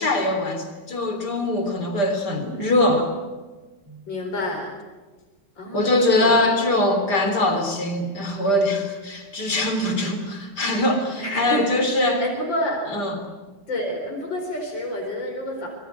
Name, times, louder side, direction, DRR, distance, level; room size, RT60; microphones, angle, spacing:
voice 1, 0.0-3.1 5.7-12.2 12.9-13.2, left 1 dB, 60° left, 6 dB, 4.0 m, -22 dB
voice 2, 3.9-4.7 5.6-6.5 11.2-11.7 12.2-12.9 13.7-15.7, left 1 dB, 80° left, 1 dB, 5.1 m, -28 dB
26.0 x 24.0 x 8.2 m, 1.3 s
omnidirectional pair, 2.0 m